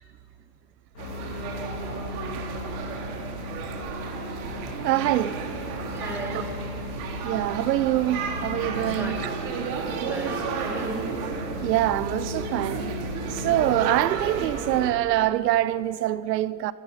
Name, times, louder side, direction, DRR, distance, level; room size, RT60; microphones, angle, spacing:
sound 1, 0.9-14.4, left 4 dB, 70° left, 2.6 m, -38 dB
sound 2, 1.0-14.9, right 5 dB, 60° right, 3.6 m, -33 dB
voice 1, 4.8-5.5 6.3-6.4 7.2-9.3 9.6-9.7 11.6-13.0 13.3-16.7, right 14 dB, 85° right, 0.8 m, -25 dB
voice 2, 5.9-6.4 9.0-9.4 10.0-11.1 11.6-11.7, right 1 dB, 5° right, 6.5 m, -35 dB
28.5 x 27.0 x 5.7 m
supercardioid pair, 150°, 48 cm